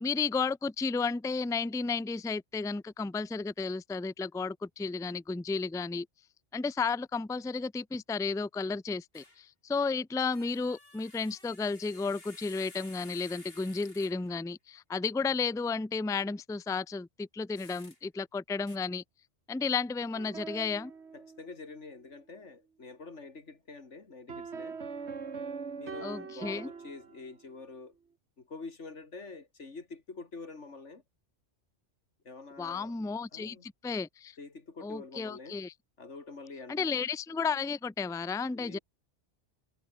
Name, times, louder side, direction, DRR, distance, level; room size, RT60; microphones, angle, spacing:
voice 1, 0.0-6.1 6.5-19.0 19.5-20.9 26.0-26.7 32.6-34.4 34.8-35.7 36.7-38.8, left 4 dB, 5° left, 0.4 m, -33 dB
sound 1, 9.1-9.4 10.2-14.4 17.5-18.0 18.7-18.8, left 2 dB, 55° left, 4.3 m, -54 dB
sound 2, 20.1-21.8 24.3-27.5, right 5 dB, 70° right, 2.0 m, -42 dB
voice 2, 21.1-24.8 25.7-28.0 28.4-31.0 32.2-32.9 33.3-33.7 34.4-35.6 36.0-36.9 38.5-38.8, left 3 dB, 85° left, 3.1 m, -46 dB
omnidirectional pair, 1.2 m